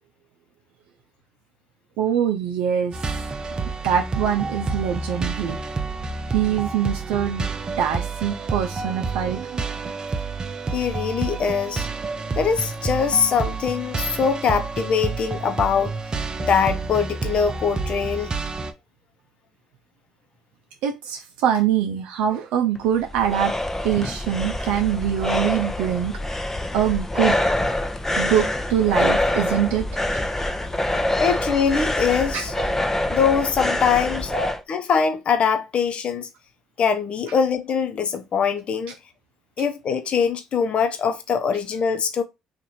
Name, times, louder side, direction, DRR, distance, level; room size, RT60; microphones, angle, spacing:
voice 1, 2.0-3.2 3.8-5.6 6.3-7.5 7.8-9.9 20.8-23.5 23.8-26.4 26.7-27.3 28.2-29.9 32.3-32.7 34.3-34.5, right 9 dB, 75° right, 0.4 m, -24 dB
sound 1, 2.9-18.7, right 4 dB, 35° right, 0.6 m, -29 dB
voice 2, 10.7-11.9 12.4-15.9 16.4-18.3 31.2-32.5 33.1-34.4 34.7-36.3 36.8-38.9 39.6-42.2, left 6 dB, 55° left, 0.8 m, -22 dB
sound 2, 22.7-34.6, left 1 dB, 15° left, 0.7 m, -25 dB
2.9 x 2.5 x 4.1 m
hypercardioid pair, 60°, 2 cm